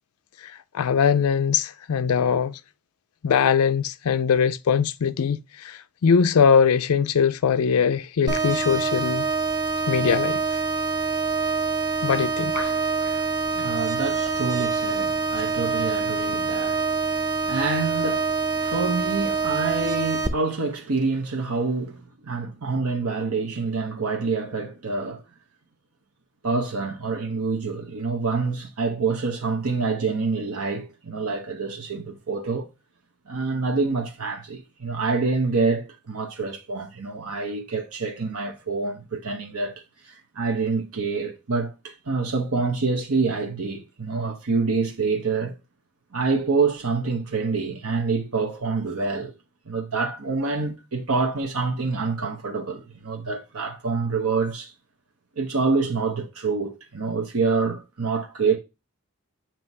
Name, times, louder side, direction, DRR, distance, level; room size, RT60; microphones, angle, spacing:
voice 1, 0.4-2.6 3.2-9.3 9.9-10.4 12.0-12.7, left 6 dB, 75° left, 0.4 m, -21 dB
sound 1, 8.3-20.3, right 4 dB, 15° right, 0.6 m, -25 dB
voice 2, 12.5-25.2 26.4-32.7 33.3-45.5 46.1-49.3 49.7-54.7 55.4-58.6, right 4 dB, 75° right, 1.0 m, -27 dB
7.8 x 3.0 x 5.3 m
head